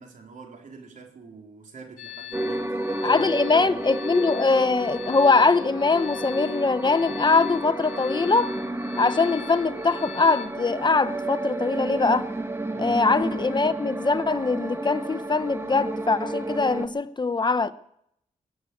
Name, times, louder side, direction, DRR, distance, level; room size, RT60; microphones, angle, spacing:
voice 1, 0.0-3.8 12.7-13.0, right 4 dB, 70° right, 4.0 m, -45 dB
sound 1, 2.0-10.5, left 12 dB, 80° left, 1.8 m, -42 dB
sound 2, 2.3-16.9, right 2 dB, 20° right, 1.8 m, -31 dB
voice 2, 3.0-8.5 9.0-12.3 12.8-17.7, left 4 dB, 35° left, 0.8 m, -22 dB
21.5 x 8.0 x 8.4 m
cardioid pair, 70°, 14 cm